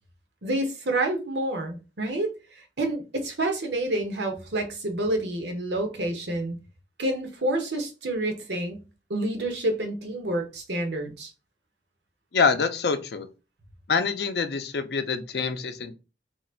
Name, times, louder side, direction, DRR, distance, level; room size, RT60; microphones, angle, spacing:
voice 1, 0.4-2.3 2.8-6.6 7.0-8.8 9.1-11.3, right 1 dB, 80° right, 1.0 m, -28 dB
voice 2, 12.3-13.3 13.9-15.9, left 5 dB, 65° left, 0.5 m, -25 dB
3.0 x 2.5 x 4.3 m
head